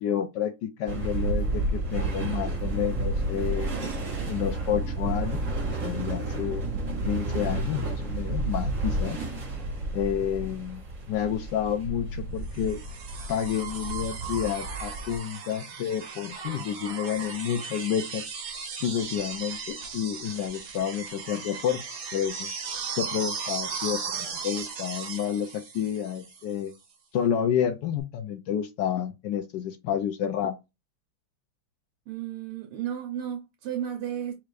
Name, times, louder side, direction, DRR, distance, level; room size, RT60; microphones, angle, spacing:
voice 1, 0.0-3.7 4.3-5.4 5.8-6.6 7.1-9.2 9.9-12.8 13.3-18.3 18.8-21.8 22.1-22.5 23.0-26.7 27.1-30.6, left 9 dB, 85° left, 0.9 m, -30 dB
sound 1, 0.9-15.2, right 2 dB, 40° right, 1.4 m, -31 dB
sound 2, 12.5-26.5 28.0-28.1, right 6 dB, 65° right, 1.9 m, -37 dB
voice 2, 32.1-34.3, right 10 dB, 90° right, 1.8 m, -33 dB
4.4 x 2.5 x 4.8 m
omnidirectional pair, 2.4 m